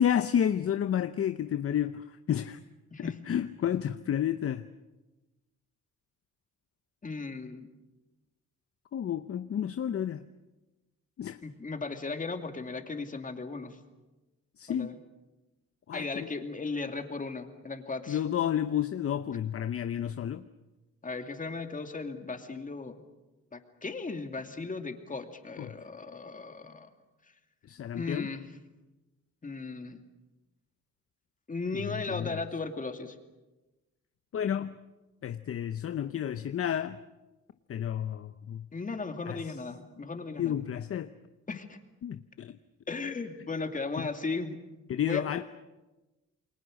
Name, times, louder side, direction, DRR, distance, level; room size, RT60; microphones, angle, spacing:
voice 1, 0.0-2.0 2.3-2.6 3.0-4.6 8.9-10.2 11.2-11.4 14.6-14.9 15.9-16.3 18.1-20.4 25.6-25.7 27.7-28.3 32.1-32.4 34.3-34.7 35.2-37.0 37.7-38.6 39.3-39.4 40.4-41.1 42.0-42.5 44.0-44.1 44.9-45.4, left 9 dB, 50° left, 11 dB, 0.8 m, -30 dB
voice 2, 7.0-7.7 11.4-13.8 14.7-15.0 15.9-18.2 21.0-23.0 23.5-26.9 28.0-28.5 29.4-30.0 31.5-33.2 38.7-40.6 41.5-41.8 42.9-44.6 45.0-45.3, left 3 dB, 25° left, 6 dB, 2.5 m, -36 dB
29.0 x 22.0 x 6.5 m, 1.1 s
cardioid pair, 90°, 30 cm